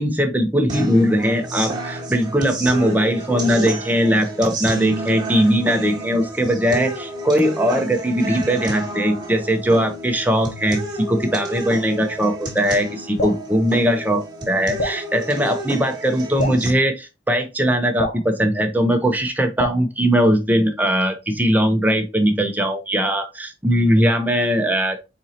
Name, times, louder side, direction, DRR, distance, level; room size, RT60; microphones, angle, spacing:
voice 1, 0.0-25.1, equal, 10° right, 4 dB, 0.7 m, -20 dB
sound 1, 0.7-16.7, right 2 dB, 25° right, 1.4 m, -31 dB
Drip, 13.2-13.4 14.8-15.0 16.4-16.6 18.0-18.2 19.6-19.9, left 1 dB, 50° left, 0.7 m, -25 dB
4.5 x 4.2 x 2.8 m, 0.25 s
head